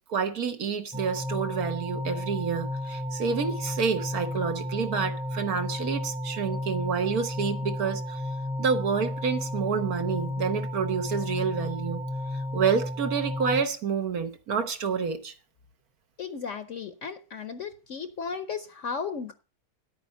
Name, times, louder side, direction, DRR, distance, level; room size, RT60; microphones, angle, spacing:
voice 1, 0.1-8.2 8.6-12.0 12.3-15.3, right 6 dB, 70° right, 1.7 m, -28 dB
sound 1, 0.9-13.6, left 1 dB, 5° right, 0.8 m, -33 dB
voice 2, 16.2-19.3, left 5 dB, 60° left, 1.0 m, -35 dB
10.5 x 8.6 x 5.4 m
omnidirectional pair, 1.7 m